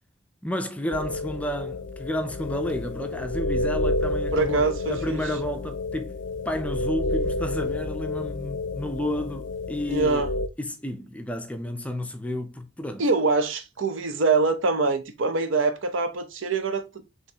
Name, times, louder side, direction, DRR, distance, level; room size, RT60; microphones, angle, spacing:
voice 1, 0.4-6.2 6.5-10.3 10.6-13.0, left 1 dB, 5° left, 0.4 m, -31 dB
sound 1, 0.9-10.5, left 2 dB, 70° left, 0.5 m, -30 dB
voice 2, 4.3-5.2 9.9-10.3 13.0-16.9, right 4 dB, 80° right, 0.7 m, -24 dB
5.6 x 3.1 x 2.8 m
head